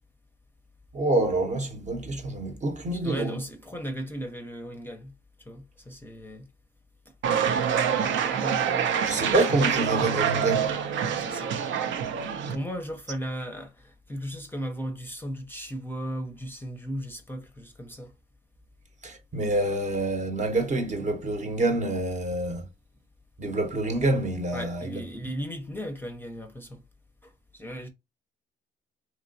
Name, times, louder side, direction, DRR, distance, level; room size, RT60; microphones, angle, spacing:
voice 1, 0.9-3.4 9.0-10.7 19.0-22.6 23.4-25.0, right 2 dB, 40° right, 0.8 m, -27 dB
voice 2, 3.0-5.1 5.4-6.5 8.1-9.3 11.2-11.6 12.5-18.1 24.5-26.8 27.2-27.9, equal, 10° left, 0.6 m, -36 dB
sound 1, 7.2-12.6, right 8 dB, 70° right, 0.5 m, -26 dB
2.9 x 2.9 x 2.6 m
cardioid pair, 90°, 20 cm